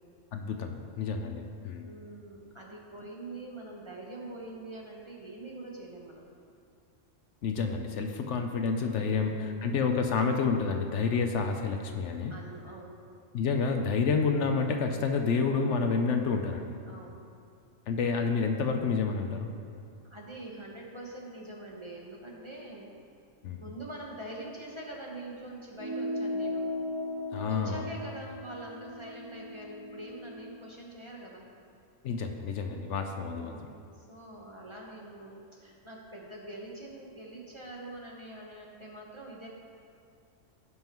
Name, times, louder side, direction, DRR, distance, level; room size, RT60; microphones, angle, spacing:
voice 1, 0.3-1.9 7.4-12.3 13.3-16.7 17.9-19.5 23.4-23.6 27.3-27.8 32.0-33.6, left 5 dB, 70° left, 5 dB, 0.9 m, -29 dB
voice 2, 1.8-6.3 8.9-9.8 12.3-13.0 16.9-17.2 20.0-22.9 23.6-26.7 27.5-31.5 33.0-39.5, right 1 dB, 25° right, -2 dB, 1.1 m, -44 dB
sound 1, 25.8-30.6, left 1 dB, 40° right, 0.4 m, -37 dB
16.5 x 5.5 x 3.0 m, 2.4 s
omnidirectional pair, 1.3 m